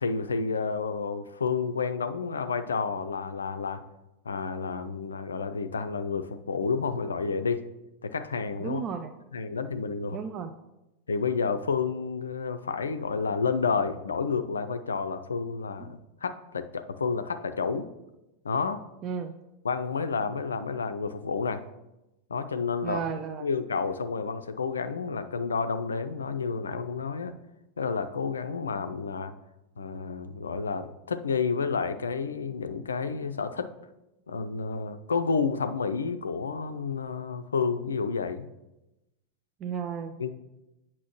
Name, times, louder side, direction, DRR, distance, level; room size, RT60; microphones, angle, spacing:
voice 1, 0.0-3.8 4.2-7.6 8.0-8.8 9.3-10.2 11.1-17.9 18.4-18.8 19.6-21.6 22.3-23.0 23.4-27.3 27.8-29.3 29.8-33.7 34.3-38.5 40.2-40.3, left 5 dB, 70° left, 10 dB, 0.4 m, -30 dB
voice 2, 8.6-9.1 10.1-10.5 15.9-16.0 19.0-19.3 22.8-23.5 39.6-40.1, right 7 dB, 30° right, 8 dB, 0.4 m, -33 dB
8.0 x 5.9 x 3.0 m, 0.96 s
figure-of-eight pair, 90°, 0 cm